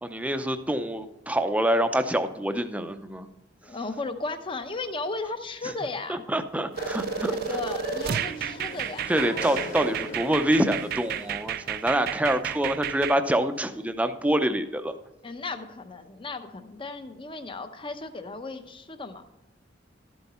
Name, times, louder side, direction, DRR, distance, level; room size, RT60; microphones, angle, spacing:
voice 1, 0.0-3.3 6.1-7.3 9.1-14.9, right 1 dB, 10° right, 8 dB, 0.6 m, -26 dB
voice 2, 3.6-6.3 7.5-9.2 15.2-19.2, left 3 dB, 30° left, 9 dB, 0.7 m, -35 dB
sound 1, 6.7-12.6, left 2 dB, 45° left, 1.8 m, -39 dB
sound 2, 6.8-13.2, right 8 dB, 55° right, 0.4 m, -32 dB
12.5 x 8.0 x 4.2 m, 0.93 s
head